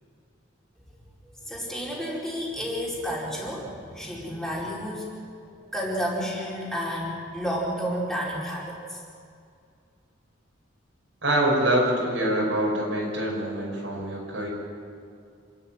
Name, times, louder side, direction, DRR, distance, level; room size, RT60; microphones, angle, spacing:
voice 1, 1.2-5.1 5.7-9.0, equal, ahead, -5 dB, 4.8 m, -31 dB
voice 2, 11.2-14.5, right 1 dB, 75° right, -4 dB, 6.0 m, -25 dB
28.0 x 13.5 x 9.3 m, 2.3 s
head